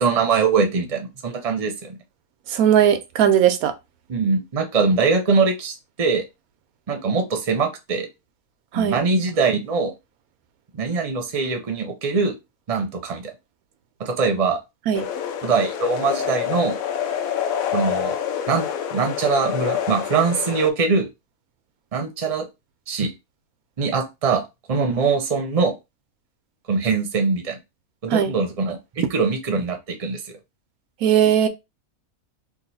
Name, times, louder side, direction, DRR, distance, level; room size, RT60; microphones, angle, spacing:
voice 1, 0.0-2.0 4.1-6.2 6.9-8.1 8.7-9.9 10.8-12.4 12.7-13.3 14.0-14.6 15.4-16.8 17.7-18.2 18.5-18.7 18.9-21.1 21.9-22.5 22.9-23.1 23.8-24.4 24.7-25.7 26.7-27.6 28.0-30.2, right 4 dB, 35° right, 0.7 m, -22 dB
voice 2, 2.5-3.7 8.7-9.0 14.9-15.1 28.1-28.3 31.0-31.5, right 9 dB, 85° right, 1.1 m, -18 dB
sound 1, 14.9-20.7, left 9 dB, 80° left, 1.0 m, -27 dB
3.0 x 2.5 x 4.0 m
omnidirectional pair, 1.5 m